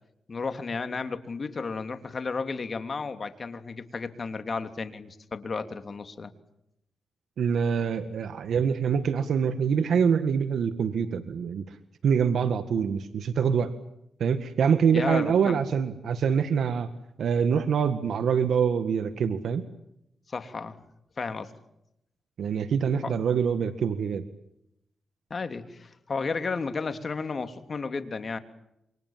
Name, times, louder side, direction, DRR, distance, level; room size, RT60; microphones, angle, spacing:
voice 1, 0.3-6.3 14.9-15.6 20.3-20.7 21.2-21.5 23.0-23.1 25.3-28.4, left 4 dB, 50° left, 9 dB, 3.1 m, -33 dB
voice 2, 7.4-11.8 12.0-13.7 14.2-16.9 17.2-19.6 22.4-24.2, right 7 dB, 80° right, 10 dB, 1.7 m, -25 dB
28.0 x 25.5 x 7.5 m, 0.82 s
cardioid pair, 65°, 0 cm